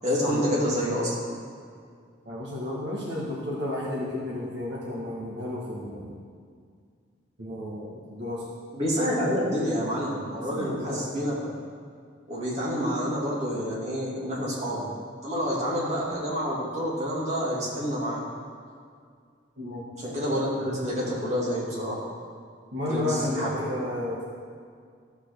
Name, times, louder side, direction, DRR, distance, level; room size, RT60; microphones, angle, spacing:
voice 1, 0.0-1.1 8.7-11.5 12.3-14.9 15.2-18.2 20.0-22.0 22.9-23.6, equal, 35° right, -6 dB, 2.8 m, -28 dB
voice 2, 2.3-6.2 7.4-8.5 10.5-11.1 19.6-19.9 22.7-24.2, left 1 dB, 70° right, -5 dB, 1.8 m, -32 dB
14.0 x 5.7 x 6.9 m, 2.1 s
head